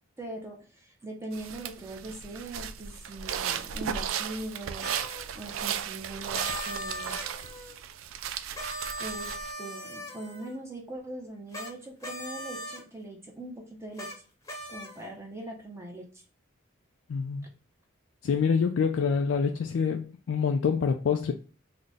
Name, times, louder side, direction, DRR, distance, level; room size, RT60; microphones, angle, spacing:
voice 1, 0.2-4.9 5.3-7.2 7.4-7.8 9.0-9.3 9.6-14.1 14.7-16.2, right 1 dB, 15° right, 0.6 m, -41 dB
sound 1, 1.3-9.5, right 8 dB, 75° right, 0.4 m, -35 dB
sound 2, 4.8-5.3 6.3-7.8 8.5-10.6 11.5-11.7 12.0-12.8 14.0-14.2 14.4-15.1, equal, 15° left, 0.8 m, -39 dB
voice 2, 17.1-17.5 18.2-21.3, left 6 dB, 65° left, 0.3 m, -26 dB
3.8 x 2.1 x 3.4 m
head